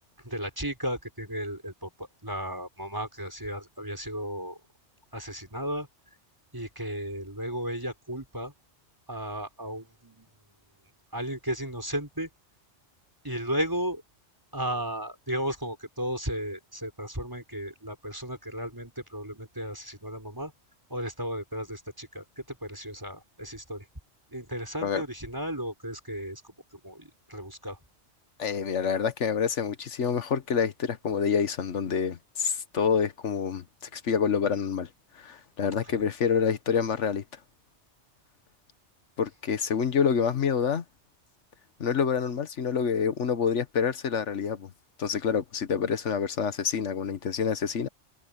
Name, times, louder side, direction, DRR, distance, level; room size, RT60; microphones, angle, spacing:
voice 1, 0.2-4.6 5.1-5.9 6.5-8.5 9.1-10.5 11.1-12.3 13.2-14.0 14.5-20.5 20.9-23.9 24.3-27.8 35.7-36.0, equal, 20° right, 5.6 m, -34 dB
voice 2, 28.4-33.6 33.9-34.9 35.1-37.2 39.2-40.8 41.8-44.7 45.0-47.9, left 6 dB, 90° left, 1.5 m, -27 dB
omnidirectional pair, 1.2 m